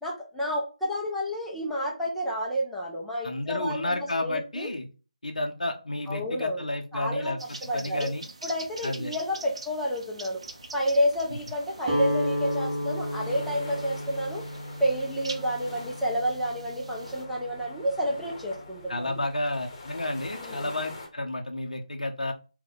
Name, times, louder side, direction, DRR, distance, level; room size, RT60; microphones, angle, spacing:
voice 1, 0.0-4.7 6.1-6.7 6.9-8.1 8.4-10.4 10.7-14.4 14.8-19.2 20.4-20.7, equal, ahead, -6 dB, 0.5 m, -30 dB
voice 2, 3.2-4.9 5.2-7.4 7.7-8.2 8.8-9.1 18.9-22.3, left 1 dB, 75° left, 4 dB, 0.5 m, -31 dB
sound 1, 7.4-17.2, right 3 dB, 50° right, 0.6 m, -45 dB
sound 2, 10.4-21.1, left 2 dB, 30° left, 0.9 m, -46 dB
Guitar, 11.8-17.9, equal, 25° right, 1.0 m, -33 dB
3.9 x 2.2 x 3.7 m, 0.34 s
figure-of-eight pair, 155°, 4 cm